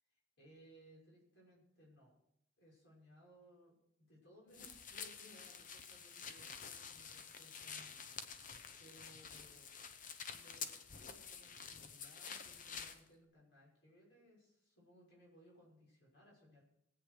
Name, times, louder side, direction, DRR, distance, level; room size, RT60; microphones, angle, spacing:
voice 1, 0.1-2.1 2.6-7.9 8.8-9.7 10.3-16.7, equal, 65° left, -3 dB, 6.1 m, -64 dB
sound 1, 4.5-13.0, left 6 dB, 40° left, 0.9 m, -49 dB
20.0 x 8.5 x 4.9 m, 0.73 s
head